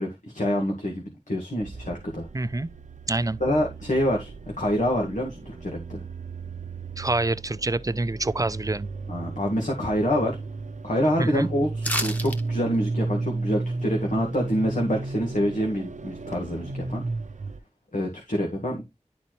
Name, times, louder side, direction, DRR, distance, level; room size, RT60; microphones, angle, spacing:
voice 1, 0.0-2.3 3.4-6.0 9.1-10.4 10.8-17.0 17.9-18.8, equal, 85° left, 1.7 m, -26 dB
sound 1, 1.6-17.6, right 3 dB, 80° right, 0.7 m, -34 dB
voice 2, 2.3-2.7 3.1-3.4 7.0-8.9 11.2-11.5, right 2 dB, 30° right, 0.5 m, -26 dB
sound 2, 11.8-12.4 12.7-12.8, equal, 10° left, 1.5 m, -28 dB
11.0 x 4.2 x 3.1 m
wide cardioid pair, 50°, 13 cm